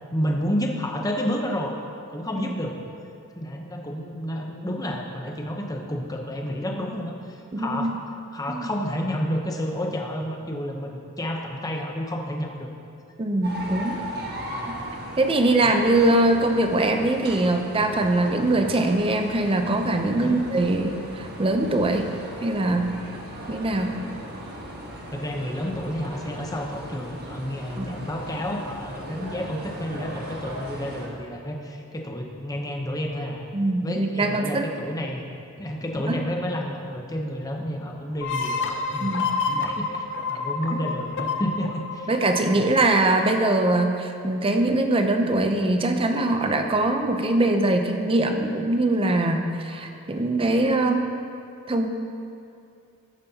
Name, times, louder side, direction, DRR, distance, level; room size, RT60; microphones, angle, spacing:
voice 1, 0.1-1.7 2.1-2.8 3.4-7.9 8.3-12.7 14.5-14.6 15.6-15.8 20.2-20.4 25.1-33.5 33.8-35.2 35.6-42.1 42.5-42.7, equal, 15° left, 1 dB, 0.8 m, -30 dB
voice 2, 7.5-7.9 8.5-8.7 13.2-14.0 14.7-14.8 15.2-22.1 22.4-22.9 23.5-24.0 27.8-28.0 33.5-34.7 36.1-36.2 39.0-39.3 40.7-40.8 42.1-51.1 51.7-51.9, right 2 dB, 25° right, 5 dB, 0.6 m, -22 dB
sound 1, 13.4-31.1, right 1 dB, 45° right, 1.3 m, -37 dB
sound 2, 38.2-43.7, left 4 dB, 55° left, 0.6 m, -29 dB
13.0 x 9.2 x 2.9 m, 2.6 s
head